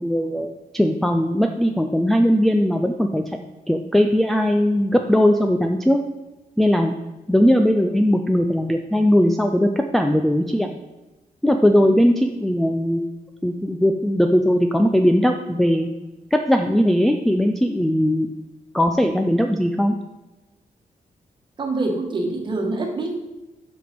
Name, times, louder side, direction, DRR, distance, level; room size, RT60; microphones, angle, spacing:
voice 1, 0.0-3.2 3.7-6.0 6.6-6.9 7.3-10.7 11.4-13.1 13.4-15.9 16.3-18.3 18.7-19.9, equal, ahead, 3 dB, 0.4 m, -19 dB
voice 2, 21.6-23.2, right 2 dB, 35° right, 2 dB, 1.4 m, -25 dB
7.9 x 6.0 x 5.2 m, 1.1 s
wide cardioid pair, 175°, 15 cm